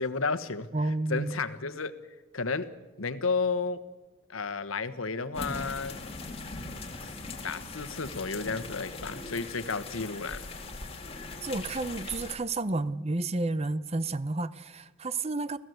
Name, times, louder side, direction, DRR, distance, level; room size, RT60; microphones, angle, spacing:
voice 1, 0.0-0.7 1.1-1.9 2.3-2.7 3.0-3.8 4.3-6.0 7.4-10.4, left 4 dB, 85° left, 11 dB, 1.3 m, -32 dB
voice 2, 0.7-1.4 11.4-15.6, right 2 dB, 30° right, 15 dB, 0.7 m, -31 dB
sound 1, 5.3-12.4, left 3 dB, 30° left, 2.3 m, -40 dB
29.5 x 15.5 x 8.0 m, 1.1 s
head